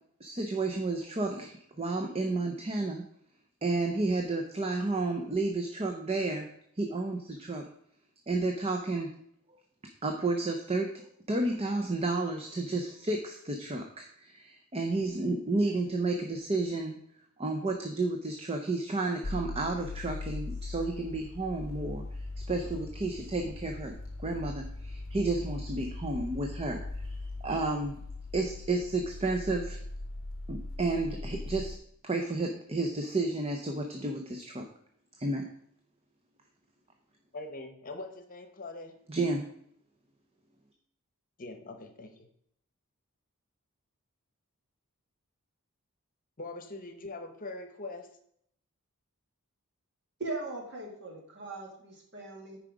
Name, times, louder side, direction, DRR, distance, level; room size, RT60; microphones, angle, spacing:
voice 1, 0.2-3.0 3.6-7.7 8.3-9.1 10.0-17.0 17.4-23.9 24.2-27.1 27.4-28.0 28.3-29.8 30.5-31.8 32.0-34.6 35.2-35.5 39.1-39.4, right 2 dB, 25° right, 4 dB, 0.7 m, -31 dB
sound 1, 19.2-31.8, left 2 dB, 65° left, 0.7 m, -40 dB
voice 2, 37.3-39.0 41.4-42.3 46.4-48.1, left 2 dB, 40° left, 7 dB, 1.0 m, -42 dB
voice 3, 50.2-52.6, right 2 dB, 55° right, 1 dB, 2.2 m, -39 dB
9.7 x 4.8 x 5.1 m, 0.69 s
head